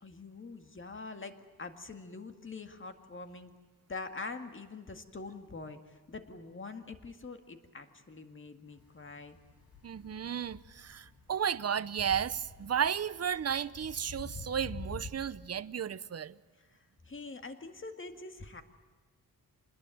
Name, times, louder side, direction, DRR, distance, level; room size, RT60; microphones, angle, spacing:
voice 1, 0.0-3.5 3.9-9.4 16.6-16.7 17.1-18.6, left 3 dB, 35° left, 2.0 m, -44 dB
sound 1, 8.7-15.1, left 3 dB, 70° left, 6.5 m, -48 dB
voice 2, 9.8-16.4, right 8 dB, 45° right, 0.7 m, -33 dB
27.5 x 20.5 x 9.1 m
wide cardioid pair, 145°, 37 cm